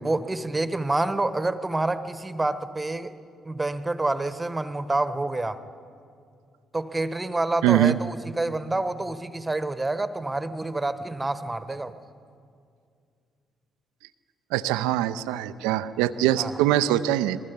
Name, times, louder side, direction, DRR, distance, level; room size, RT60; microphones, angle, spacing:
voice 1, 0.0-3.1 3.4-5.6 6.7-12.0 16.4-16.6, right 2 dB, 20° right, 13 dB, 1.3 m, -28 dB
voice 2, 7.6-8.0 14.5-17.4, right 13 dB, 70° right, 13 dB, 0.6 m, -23 dB
28.0 x 21.0 x 5.3 m, 2.3 s
figure-of-eight pair, 45°, 0 cm